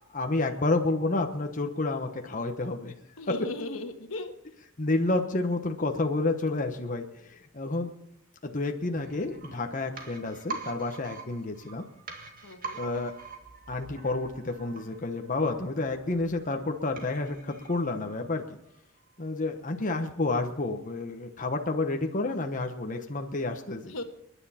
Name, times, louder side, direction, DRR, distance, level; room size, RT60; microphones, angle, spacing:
voice 1, 0.1-2.9 4.8-7.9 8.4-11.8 12.8-13.1 13.7-18.4 19.2-23.9, left 2 dB, 40° left, 4 dB, 1.1 m, -30 dB
voice 2, 3.2-4.3 12.4-12.8 23.9-24.0, left 2 dB, 80° left, 6 dB, 1.5 m, -36 dB
sound 1, 9.0-18.7 19.0-19.1, right 4 dB, 45° right, 2.0 m, -44 dB
29.5 x 10.0 x 4.3 m, 0.80 s
head